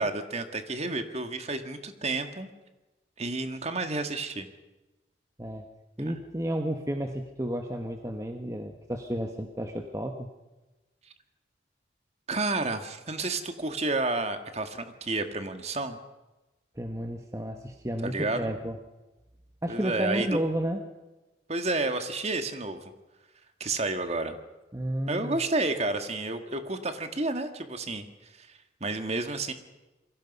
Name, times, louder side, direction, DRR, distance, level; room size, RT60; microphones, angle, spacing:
voice 1, 0.0-2.5 3.2-4.5 6.1-6.2 12.3-16.0 18.0-18.5 19.7-20.4 21.5-22.9 23.6-24.4 25.1-28.1 28.4-28.5 28.8-29.5, right 2 dB, 35° right, 7 dB, 1.8 m, -30 dB
voice 2, 6.0-10.3 16.8-18.8 19.6-20.8 24.7-25.4, right 1 dB, 15° right, 4 dB, 1.3 m, -32 dB
28.0 x 22.5 x 5.5 m, 1.1 s
head